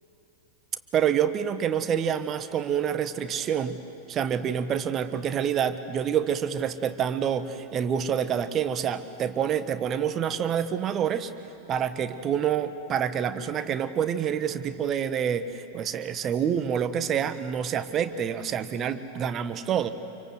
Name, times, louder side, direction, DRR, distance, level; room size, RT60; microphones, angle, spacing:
voice 1, 0.9-3.8 4.1-11.3 11.7-19.9, right 8 dB, 30° right, 11 dB, 1.2 m, -27 dB
27.0 x 24.5 x 8.0 m, 2.9 s
figure-of-eight pair, 90°, 0 cm